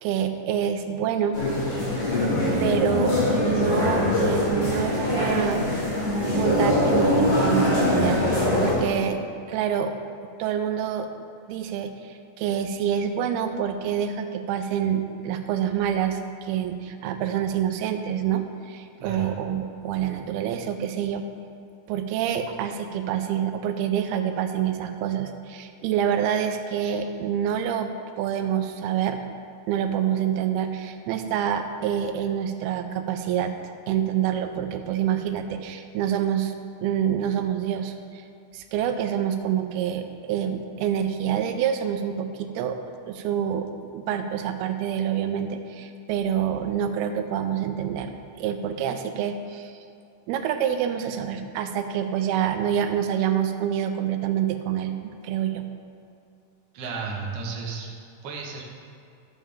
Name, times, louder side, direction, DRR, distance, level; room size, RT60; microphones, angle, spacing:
voice 1, 0.0-1.4 2.6-3.2 3.4-5.7 6.3-9.2 9.5-9.9 10.4-11.1 11.5-21.2 21.9-27.9 28.2-29.2 29.7-33.5 33.9-36.6 36.8-38.3 38.5-42.8 43.1-48.1 48.4-49.8 50.3-55.6, right 9 dB, 85° right, 7 dB, 2.5 m, -27 dB
sound 1, 1.3-8.7, left 1 dB, 55° left, 4.0 m, -23 dB
voice 2, 19.0-19.4 26.8-27.0 56.7-57.9 58.2-58.6, right 4 dB, 60° right, -2 dB, 1.7 m, -33 dB
12.5 x 7.3 x 3.5 m, 2.5 s
omnidirectional pair, 4.4 m